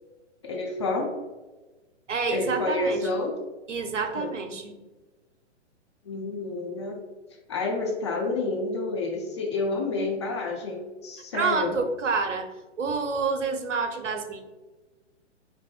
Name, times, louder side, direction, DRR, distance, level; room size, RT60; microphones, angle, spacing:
voice 1, 0.4-1.1 2.3-3.3 4.1-4.6 6.0-7.0 7.5-11.8, left 3 dB, 25° left, 0 dB, 0.4 m, -29 dB
voice 2, 2.1-3.1 3.7-4.8 11.3-12.5 12.8-14.4, right 4 dB, 80° right, 6 dB, 0.6 m, -28 dB
4.7 x 2.5 x 2.4 m, 1.2 s
figure-of-eight pair, 120°, 36 cm